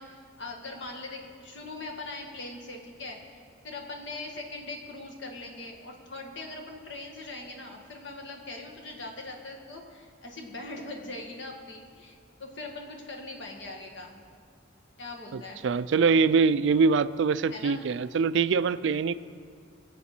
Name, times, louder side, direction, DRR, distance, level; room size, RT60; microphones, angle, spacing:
voice 1, 0.0-14.1 15.0-15.6 17.5-17.8, left 2 dB, 65° left, 1 dB, 1.9 m, -41 dB
voice 2, 15.3-19.1, right 5 dB, 65° right, 16 dB, 0.4 m, -24 dB
23.0 x 7.9 x 4.4 m, 2.1 s
head